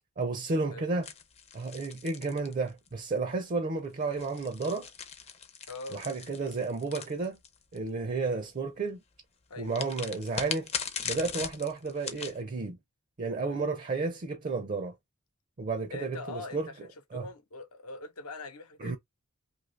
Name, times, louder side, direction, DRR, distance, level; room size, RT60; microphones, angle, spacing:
voice 1, 0.2-1.1 1.5-4.9 5.9-7.4 7.7-9.0 9.6-10.7 11.0-12.8 13.2-14.9 15.6-16.7 17.1-17.3 18.8-19.0, right 3 dB, 35° right, 0.5 m, -32 dB
sound 1, 1.0-3.0 4.0-7.8 9.7-12.4, left 7 dB, 30° left, 0.5 m, -39 dB
voice 2, 5.7-6.0 9.5-9.8 13.4-13.6 15.9-19.0, left 2 dB, 90° left, 0.9 m, -43 dB
2.8 x 2.5 x 3.2 m
head